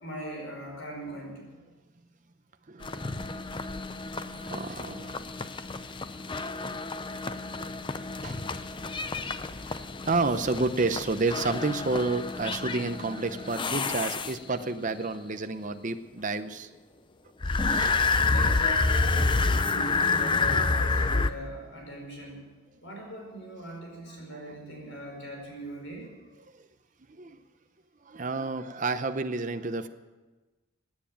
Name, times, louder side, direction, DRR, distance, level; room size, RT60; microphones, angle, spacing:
voice 1, 0.0-1.6 18.3-22.4 22.8-26.1, equal, 60° left, 0 dB, 5.2 m, -40 dB
voice 2, 2.7-3.2 4.1-5.2 8.2-8.4 9.2-16.7 17.4-18.0 24.3-24.4 26.5-26.7 27.1-27.4 28.0-29.9, right 3 dB, 35° right, 9 dB, 0.7 m, -31 dB
sound 1, 2.8-14.7 17.4-21.3, left 3 dB, 20° left, 0.5 m, -29 dB
17.5 x 9.4 x 8.8 m, 1.2 s
head